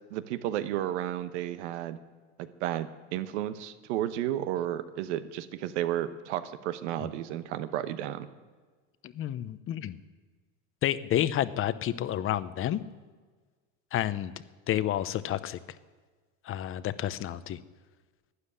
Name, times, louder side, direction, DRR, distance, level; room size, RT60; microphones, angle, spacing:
voice 1, 0.1-2.0 2.6-8.3, right 12 dB, 85° right, 12 dB, 1.1 m, -32 dB
voice 2, 9.0-10.0 10.8-12.8 13.9-14.3 14.7-15.6 16.4-17.6, left 12 dB, 40° left, 14 dB, 0.8 m, -30 dB
12.5 x 9.8 x 9.9 m, 1.4 s
supercardioid pair, 110°, 34 cm